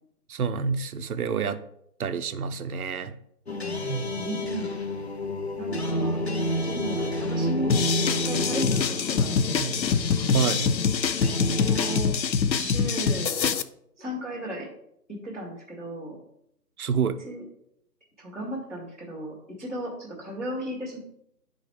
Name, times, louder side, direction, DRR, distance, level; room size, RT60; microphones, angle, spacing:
voice 1, 0.3-1.6 2.0-3.2 10.3-10.8 13.4-13.6 16.8-17.2, right 6 dB, 60° right, 10 dB, 0.6 m, -28 dB
sound 1, 3.5-12.0, equal, 40° left, 0.6 m, -30 dB
voice 2, 4.2-4.7 5.6-6.2 6.6-7.8 8.2-9.8 11.5-12.1 12.5-13.4 14.0-14.7 15.1-16.2 17.2-17.4 18.2-21.0, right 1 dB, 10° left, -12 dB, 0.9 m, -35 dB
sound 2, 7.7-13.6, left 6 dB, 90° left, 0.6 m, -25 dB
10.0 x 3.9 x 3.3 m, 0.73 s
figure-of-eight pair, 160°, 50 cm